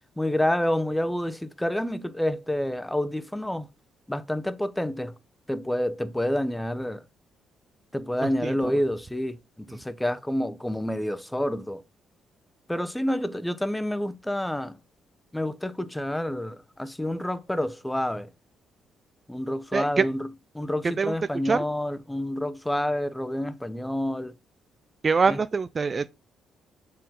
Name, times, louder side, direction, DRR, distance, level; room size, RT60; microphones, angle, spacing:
voice 1, 0.2-3.7 4.1-5.1 5.5-7.0 7.9-11.8 12.7-14.8 15.3-18.3 19.3-20.3 20.5-24.3 25.3-25.4, left 1 dB, 5° left, 0.6 m, -28 dB
voice 2, 8.2-8.5 19.7-20.0 21.0-21.1 21.4-21.6 25.0-26.1, right 5 dB, 35° right, 0.3 m, -24 dB
7.3 x 4.5 x 3.8 m
cardioid pair, 90°, 0 cm